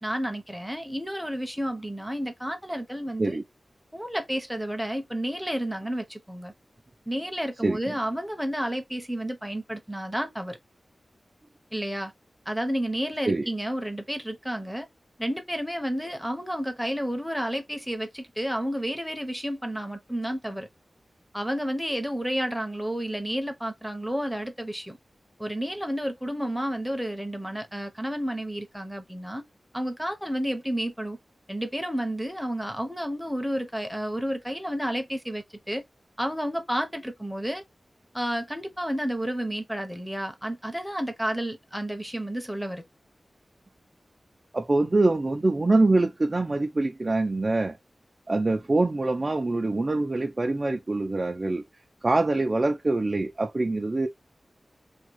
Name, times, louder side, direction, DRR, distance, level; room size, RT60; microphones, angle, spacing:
voice 1, 0.0-3.4 3.9-6.5 7.1-10.6 11.7-12.1 12.5-14.9 15.2-20.7 21.3-25.0 25.4-29.4 29.7-31.2 31.5-35.8 36.2-37.6 38.1-42.8, equal, ahead, 0.8 m, -31 dB
voice 2, 7.6-7.9 13.3-13.4 44.5-47.8 48.3-51.6 52.0-54.1, right 2 dB, 35° right, 0.4 m, -24 dB
3.5 x 2.3 x 3.0 m
wide cardioid pair, 95°, 0 cm